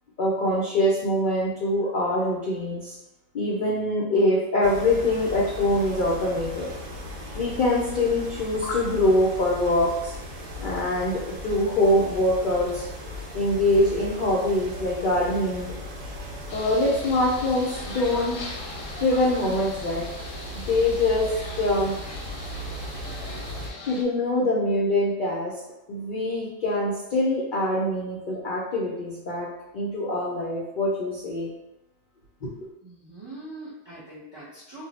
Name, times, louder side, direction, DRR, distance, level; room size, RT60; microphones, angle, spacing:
voice 1, 0.2-3.0 3.3-6.7 7.3-10.1 10.6-12.9 13.3-15.7 16.5-18.4 19.0-20.1 20.5-21.3 21.6-21.9 23.9-25.5 25.9-29.5 29.7-31.5 32.4-32.5, left 1 dB, 60° left, -4 dB, 0.5 m, -24 dB
sound 1, 4.6-23.7, equal, 70° right, 1.0 m, -37 dB
sound 2, 16.5-24.0, left 3 dB, 85° left, 1.0 m, -41 dB
voice 2, 32.8-34.8, right 2 dB, 30° right, -10 dB, 0.5 m, -42 dB
2.6 x 2.0 x 4.0 m, 0.93 s
omnidirectional pair, 1.3 m